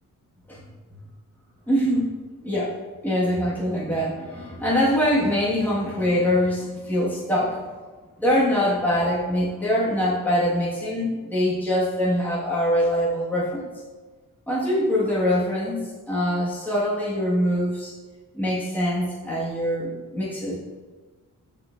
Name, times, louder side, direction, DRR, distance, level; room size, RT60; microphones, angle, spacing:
voice 1, 1.7-2.1 2.4-2.7 3.0-7.6 8.2-13.6 14.5-17.9 18.3-20.5, equal, 5° left, -8 dB, 1.8 m, -23 dB
6.7 x 5.8 x 2.6 m, 1.3 s
cardioid pair, 70°, 35 cm